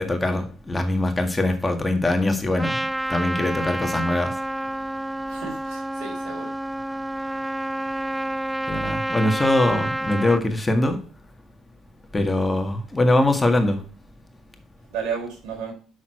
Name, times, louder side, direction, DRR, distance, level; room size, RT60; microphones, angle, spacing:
voice 1, 0.0-4.3 8.7-11.0 12.1-13.8, left 1 dB, 20° left, 1.8 m, -22 dB
Trumpet, 2.6-10.4, right 1 dB, 10° right, 0.4 m, -29 dB
voice 2, 5.3-6.5 14.9-15.7, right 6 dB, 75° right, 3.9 m, -32 dB
7.1 x 6.4 x 4.3 m
supercardioid pair, 75°, 0 cm